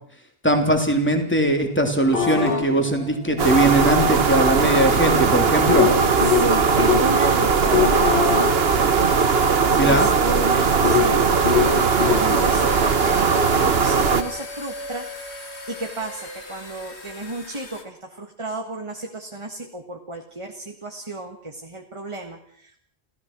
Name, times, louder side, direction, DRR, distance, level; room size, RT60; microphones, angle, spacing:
voice 1, 0.4-5.9 9.7-10.1, right 1 dB, 10° left, 4 dB, 3.3 m, -20 dB
sound 1, 2.1-7.1 7.5-12.2, left 6 dB, 55° left, 2.1 m, -25 dB
sound 2, 3.4-14.2, right 5 dB, 60° right, 1.4 m, -19 dB
voice 2, 6.2-8.4 9.9-11.2 12.1-15.1 15.7-22.8, right 2 dB, 25° right, 3 dB, 1.8 m, -32 dB
sound 3, 11.5-17.8, left 1 dB, 75° left, 2.7 m, -36 dB
29.5 x 15.5 x 6.2 m, 0.65 s
omnidirectional pair, 1.1 m